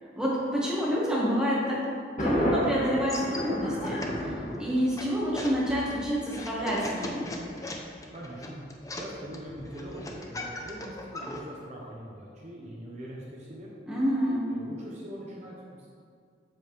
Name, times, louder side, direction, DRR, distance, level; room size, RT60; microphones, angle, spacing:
voice 1, 0.1-1.8 2.2-7.3 13.9-14.5, equal, 5° right, -7 dB, 1.5 m, -28 dB
Thunder, 2.2-5.2, left 1 dB, 40° left, 1.5 m, -31 dB
sound 1, 3.1-11.4, left 1 dB, 20° left, 0.6 m, -40 dB
voice 2, 8.1-13.7 14.5-15.9, equal, 40° right, -4 dB, 0.9 m, -42 dB
7.7 x 7.5 x 3.3 m, 2.2 s
head